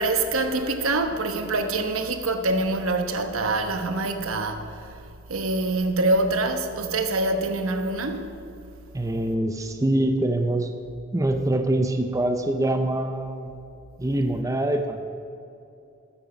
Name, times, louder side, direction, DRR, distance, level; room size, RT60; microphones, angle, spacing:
voice 1, 0.0-4.7 5.3-8.3, right 2 dB, 75° right, 1.0 m, -25 dB
voice 2, 8.9-10.7 11.1-13.6 14.0-15.0, right 1 dB, 15° right, 0.5 m, -24 dB
12.5 x 9.0 x 5.9 m
head